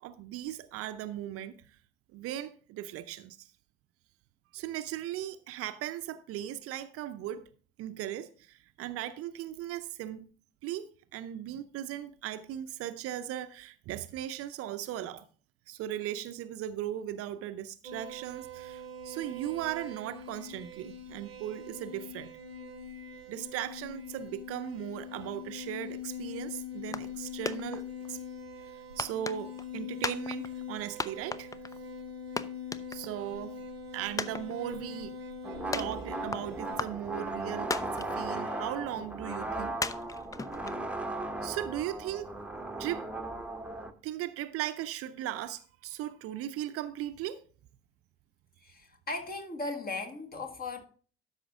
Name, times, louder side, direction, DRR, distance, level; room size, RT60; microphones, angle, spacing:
voice 1, 0.0-1.6 2.1-3.5 4.5-7.4 7.8-10.3 10.6-15.3 15.7-22.3 23.3-28.2 29.0-31.5 32.9-33.6 33.9-35.1 35.7-39.8 41.4-42.3 42.8-43.0 44.0-47.4, right 12 dB, 50° right, 0.6 m, -38 dB
sound 1, 17.8-36.8, left 4 dB, 85° right, 0.9 m, -43 dB
sound 2, 26.9-27.2 27.5-28.1 29.0-29.7 30.0-30.7 31.0-31.8 32.1-32.2 32.4-33.3 33.6-33.7 34.2-35.0 35.7-36.4 36.8-37.3 37.7-38.4 38.8-38.9 39.8-41.1, left 4 dB, 10° left, 0.4 m, -35 dB
sound 3, 35.4-43.9, right 2 dB, 5° right, 1.1 m, -37 dB
voice 2, 48.6-50.9, left 3 dB, 30° left, 1.8 m, -37 dB
12.5 x 5.6 x 3.5 m
figure-of-eight pair, 50°, 30 cm